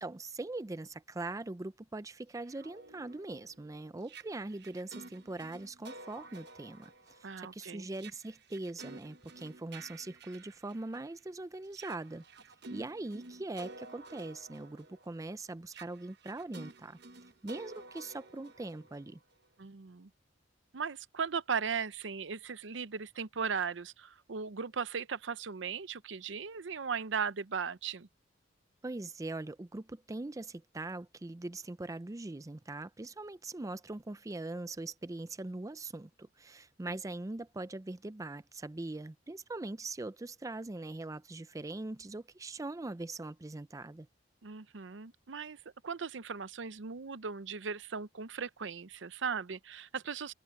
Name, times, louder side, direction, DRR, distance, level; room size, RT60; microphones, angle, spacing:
voice 1, 0.0-12.2 12.7-17.0 17.4-19.2 28.8-44.1, right 2 dB, 20° right, 0.4 m, -41 dB
sound 1, 2.4-11.2 11.7-19.5, right 3 dB, 65° right, 1.2 m, -52 dB
voice 2, 7.2-7.9 19.6-20.1 20.7-28.1 36.8-37.0 44.4-50.3, right 6 dB, 80° right, 0.7 m, -37 dB
open air
head